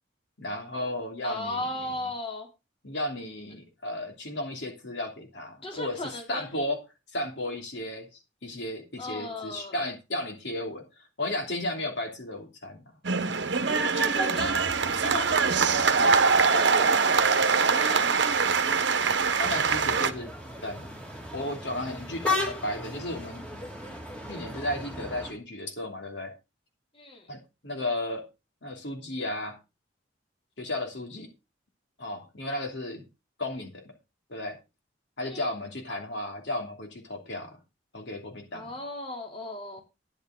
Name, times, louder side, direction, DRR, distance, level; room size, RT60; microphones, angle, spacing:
voice 1, 0.4-1.7 2.8-6.8 7.1-10.8 11.2-12.8 19.4-20.3 20.6-20.9 21.3-23.5 24.3-26.3 27.3-28.2 28.6-29.6 30.6-31.3 32.0-33.0 33.4-33.9 34.3-34.6 35.2-37.6 37.9-38.8, left 1 dB, 60° left, 3 dB, 3.0 m, -34 dB
voice 2, 1.2-2.5 5.6-6.4 9.0-9.8 13.7-16.3 16.5-18.4 26.9-27.3 35.3-35.5 38.5-39.8, left 1 dB, 30° left, 2 dB, 3.0 m, -36 dB
sound 1, 13.0-20.1, right 5 dB, 65° right, 1.1 m, -23 dB
sound 2, 19.4-25.3, left 3 dB, 5° left, 3.0 m, -35 dB
12.0 x 10.5 x 3.8 m, 0.27 s
head